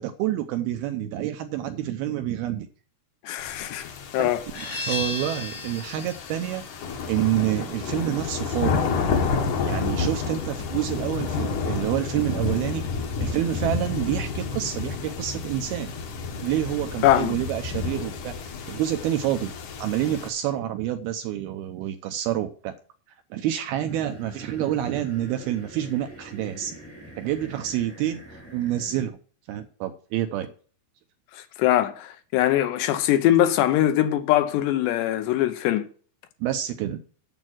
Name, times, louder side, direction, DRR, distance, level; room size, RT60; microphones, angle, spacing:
voice 1, 0.0-2.7 4.2-4.3 4.6-6.6 7.1-8.9 9.6-12.8 13.2-15.9 16.4-19.5 19.8-22.8 23.3-26.8 27.2-29.2 29.5-30.5 36.4-37.0, right 12 dB, 80° right, 2.4 m, -28 dB
voice 2, 3.2-4.9 17.0-17.4 31.3-35.9, left 13 dB, 80° left, 2.9 m, -22 dB
sound 1, 3.4-20.3, left 5 dB, 65° left, 2.1 m, -30 dB
sound 2, 4.5-10.0, left 2 dB, 35° left, 0.6 m, -37 dB
sound 3, 23.9-29.1, right 1 dB, 5° left, 0.9 m, -44 dB
9.1 x 7.4 x 6.1 m
omnidirectional pair, 5.1 m